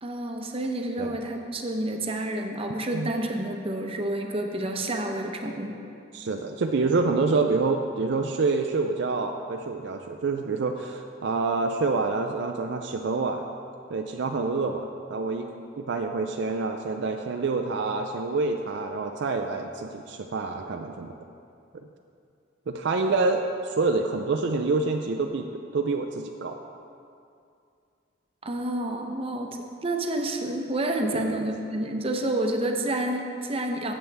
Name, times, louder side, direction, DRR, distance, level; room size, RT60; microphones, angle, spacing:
voice 1, 0.0-5.8 28.4-33.9, right 1 dB, 30° right, 3 dB, 0.8 m, -29 dB
voice 2, 6.1-13.4 13.9-15.5 15.8-21.1 22.7-26.6 31.1-31.4, right 3 dB, 60° right, 4 dB, 0.4 m, -27 dB
13.5 x 7.8 x 3.4 m, 2.5 s
head